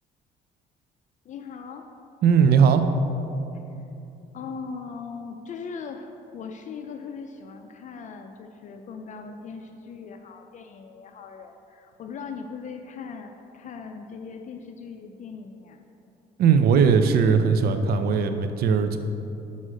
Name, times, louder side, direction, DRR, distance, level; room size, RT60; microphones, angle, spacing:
voice 1, 1.2-1.8 4.3-15.8, left 5 dB, 45° left, 5 dB, 0.5 m, -39 dB
voice 2, 2.2-2.8 16.4-19.0, right 6 dB, 65° right, 8 dB, 0.5 m, -19 dB
6.3 x 5.4 x 6.3 m, 2.8 s
cardioid pair, 110°, 17 cm